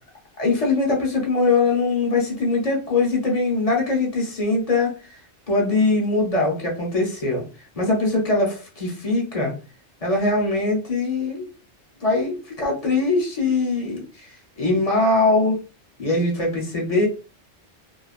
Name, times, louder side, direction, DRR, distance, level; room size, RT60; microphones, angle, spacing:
voice 1, 0.4-5.2 5.5-7.4 7.7-9.5 10.0-11.5 12.0-14.3 14.6-15.6 16.0-17.1, left 3 dB, 35° left, -1 dB, 0.8 m, -22 dB
2.3 x 2.2 x 2.4 m, 0.33 s
omnidirectional pair, 1.2 m